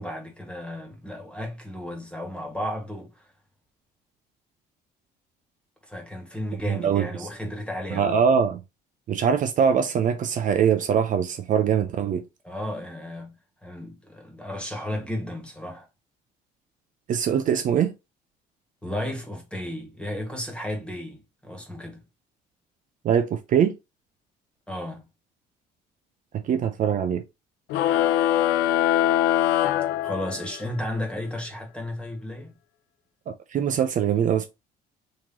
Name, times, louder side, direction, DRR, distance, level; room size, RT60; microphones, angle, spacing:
voice 1, 0.0-3.3 5.9-8.2 12.4-13.3 13.6-15.9 18.8-22.0 24.7-25.0 30.0-32.5, left 1 dB, 5° left, 1.6 m, -34 dB
voice 2, 6.7-7.1 7.9-8.6 9.1-12.2 17.1-17.9 23.0-23.7 26.3-27.2 33.3-34.5, right 8 dB, 50° right, 0.5 m, -22 dB
sound 1, 27.7-30.7, left 12 dB, 85° left, 0.4 m, -22 dB
3.8 x 3.0 x 2.8 m
cardioid pair, 110°, 17 cm